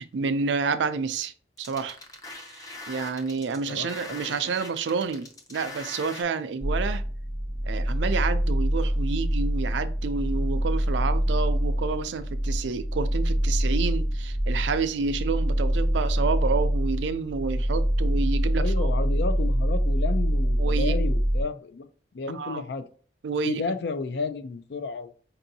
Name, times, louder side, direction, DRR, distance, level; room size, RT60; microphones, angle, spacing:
voice 1, 0.0-1.3 1.6-2.0 2.6-7.0 7.6-18.9 20.6-21.0 22.3-22.6 23.2-23.6, right 5 dB, 90° right, 0.4 m, -29 dB
sound 1, 1.6-6.2, left 2 dB, 20° left, 0.6 m, -42 dB
voice 2, 3.7-4.4 18.5-21.9 22.1-22.8 23.4-25.1, left 4 dB, 65° left, 0.4 m, -32 dB
sound 2, 6.6-21.4, equal, 80° left, 1.3 m, -25 dB
5.3 x 2.6 x 2.7 m
head